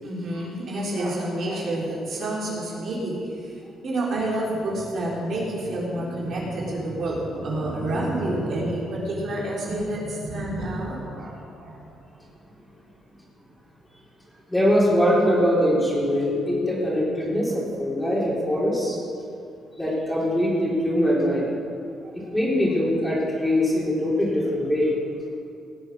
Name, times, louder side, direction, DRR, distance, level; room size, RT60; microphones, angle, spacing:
voice 1, 0.0-3.5 3.8-11.9, right 1 dB, 60° right, -5 dB, 4.3 m, -28 dB
voice 2, 14.5-19.0 19.8-21.5 22.2-24.9, equal, 10° left, -5 dB, 4.1 m, -22 dB
18.5 x 7.9 x 6.6 m, 2.6 s
cardioid pair, 90°, 0 cm